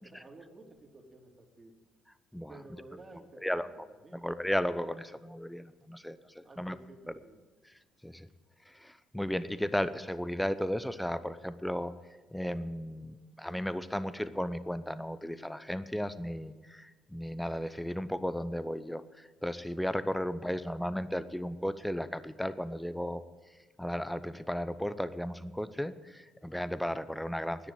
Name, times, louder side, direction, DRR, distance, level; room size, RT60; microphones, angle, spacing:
voice 1, 0.0-1.7 2.5-3.7 4.0-4.3 6.4-7.4, right 2 dB, 30° right, 1 dB, 3.0 m, -53 dB
voice 2, 4.2-6.8 8.0-8.3 8.7-11.9 12.3-23.2 23.8-27.7, equal, 5° left, 14 dB, 0.7 m, -35 dB
10.0 x 9.8 x 9.0 m, 1.3 s
hypercardioid pair, 50°, 0 cm